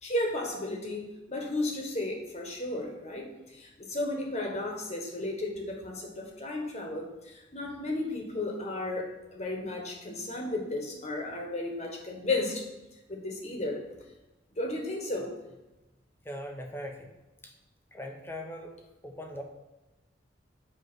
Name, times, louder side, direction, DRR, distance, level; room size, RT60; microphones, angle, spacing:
voice 1, 0.0-12.7 13.1-13.8 14.5-15.3, left 2 dB, 35° left, 1 dB, 1.3 m, -34 dB
voice 2, 16.2-17.1 17.4-17.5 17.9-18.7 19.0-19.4, equal, 10° left, 2 dB, 0.8 m, -40 dB
7.9 x 3.2 x 6.1 m, 1.0 s
head